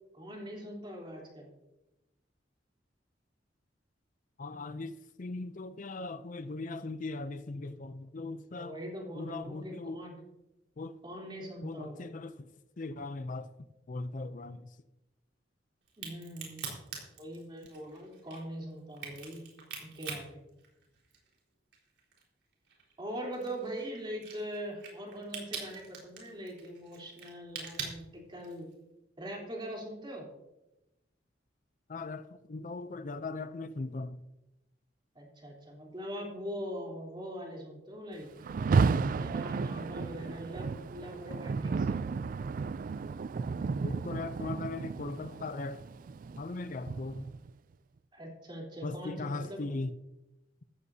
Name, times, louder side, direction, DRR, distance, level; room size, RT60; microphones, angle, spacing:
voice 1, 0.1-1.5 8.5-10.2 11.0-12.1 16.0-16.7 17.2-19.5 19.8-20.4 23.0-28.7 29.2-30.3 35.2-38.3 39.2-42.0 48.1-49.7, equal, 25° right, 3.6 m, -42 dB
voice 2, 4.4-8.7 9.2-10.0 10.8-11.0 11.6-12.5 12.8-13.5 13.9-14.8 31.9-34.2 43.8-45.8 46.4-47.3 48.8-50.0, left 3 dB, 45° left, 0.5 m, -39 dB
Crack, 15.9-21.4 21.7-28.7, right 5 dB, 80° right, 4.4 m, -44 dB
Rain, 38.4-47.5, right 4 dB, 50° right, 0.3 m, -32 dB
15.0 x 14.5 x 2.8 m
head